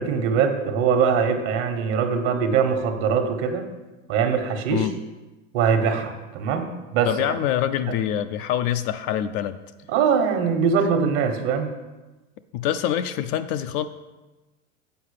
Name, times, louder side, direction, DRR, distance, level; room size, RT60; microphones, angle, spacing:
voice 1, 0.0-3.7 4.1-4.9 5.5-7.1 9.9-11.7, right 6 dB, 55° right, 6 dB, 1.4 m, -22 dB
voice 2, 7.1-9.6 12.5-13.9, left 11 dB, 45° left, 10 dB, 0.5 m, -25 dB
7.7 x 4.8 x 6.6 m, 1.1 s
hypercardioid pair, 105°, 40 cm